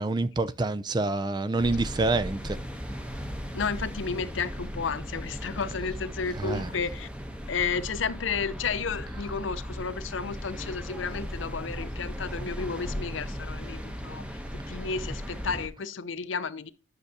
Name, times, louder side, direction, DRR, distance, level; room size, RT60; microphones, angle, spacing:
voice 1, 0.0-2.6 6.4-6.7, right 2 dB, 20° right, 0.3 m, -27 dB
sound 1, 1.6-15.7, equal, 5° right, 0.8 m, -37 dB
voice 2, 3.5-7.1 7.5-16.7, left 5 dB, 80° left, 0.6 m, -32 dB
10.5 x 6.5 x 2.7 m
head